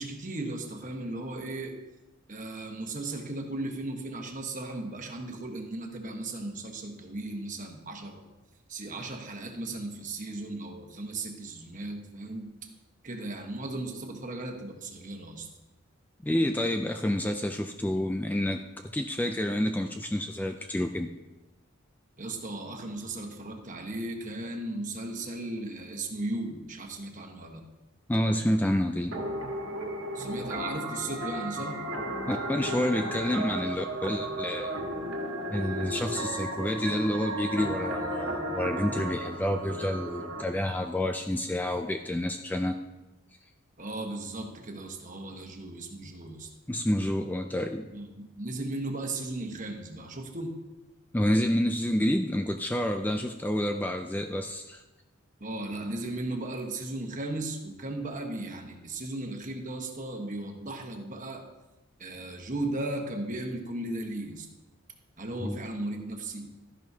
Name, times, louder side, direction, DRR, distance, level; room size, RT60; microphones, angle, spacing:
voice 1, 0.0-1.7 2.3-8.2 8.7-12.5 13.0-15.5 22.2-27.6 30.1-31.8 43.8-46.5 47.9-50.6 55.4-61.4 62.0-64.5 65.2-66.5, right 2 dB, 40° right, 3 dB, 1.2 m, -36 dB
voice 2, 16.2-21.1 28.1-29.2 32.3-34.7 35.5-42.8 46.7-47.9 51.1-54.8 65.4-65.6, left 1 dB, 10° left, 6 dB, 0.3 m, -29 dB
sound 1, 29.1-40.4, right 1 dB, 60° right, 1.6 m, -34 dB
12.5 x 10.5 x 2.8 m, 1.1 s
head